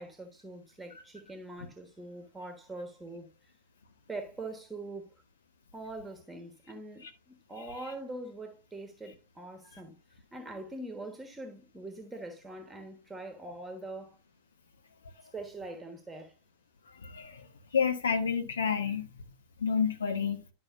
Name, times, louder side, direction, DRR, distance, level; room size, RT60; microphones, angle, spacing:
voice 1, 0.0-3.3 4.1-5.1 5.7-10.0 10.3-14.2 15.3-16.3, right 2 dB, 10° right, 1.3 m, -43 dB
voice 2, 17.0-17.5 17.7-19.1 19.6-20.4, left 6 dB, 70° left, 1.2 m, -29 dB
11.0 x 5.7 x 2.6 m
figure-of-eight pair, 90°, 0 cm